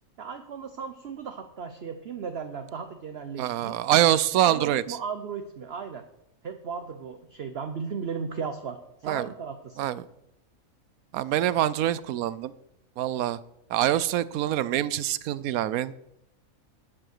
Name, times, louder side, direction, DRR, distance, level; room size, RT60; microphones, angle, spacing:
voice 1, 0.2-3.8 4.5-6.0 6.4-9.9, right 6 dB, 55° right, 7 dB, 0.9 m, -36 dB
voice 2, 3.4-4.8 9.0-9.3 9.8-10.1 11.1-12.5 13.0-13.4 13.7-15.9, right 12 dB, 90° right, 18 dB, 1.0 m, -25 dB
11.0 x 7.7 x 6.5 m, 0.84 s
omnidirectional pair, 1.5 m